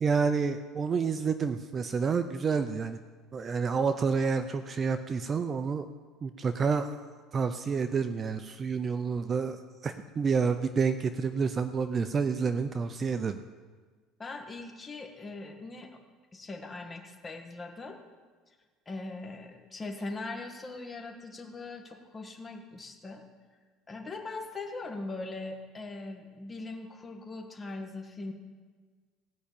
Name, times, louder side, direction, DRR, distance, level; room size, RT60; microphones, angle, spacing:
voice 1, 0.0-3.0 3.3-5.9 6.2-7.0 7.3-13.4, right 5 dB, 25° right, 10 dB, 0.5 m, -29 dB
voice 2, 14.2-15.9 16.3-18.0 18.8-23.2 23.9-28.3, left 3 dB, 20° left, 3 dB, 1.6 m, -40 dB
17.0 x 5.7 x 8.5 m, 1.5 s
cardioid pair, 140°, 0 cm